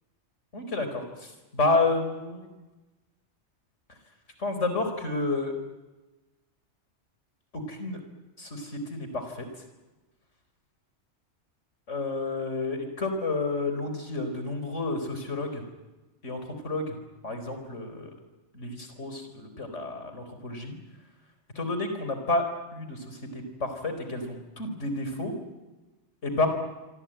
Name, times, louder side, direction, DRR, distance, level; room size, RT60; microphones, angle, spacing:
voice 1, 0.5-2.5 4.4-5.6 7.5-8.0 8.4-9.5 11.9-15.6 16.2-17.0 17.2-18.1 18.5-20.8 21.5-22.4 22.7-25.3 26.2-26.5, left 2 dB, 90° left, 7 dB, 4.6 m, -30 dB
26.5 x 24.5 x 9.1 m, 1.2 s
omnidirectional pair, 1.2 m